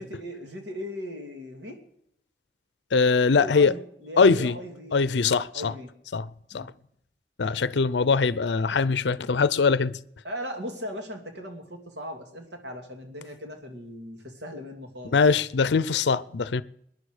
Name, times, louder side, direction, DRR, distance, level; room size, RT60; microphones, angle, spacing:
voice 1, 0.0-1.8 3.3-5.9 6.5-6.7 10.2-15.4, equal, 90° right, 2.6 m, -38 dB
voice 2, 2.9-3.7 4.2-4.6 4.9-5.7 6.1-6.3 6.5-6.7 7.4-9.9 15.1-16.6, left 4 dB, 85° left, 0.5 m, -22 dB
21.0 x 10.5 x 4.9 m
head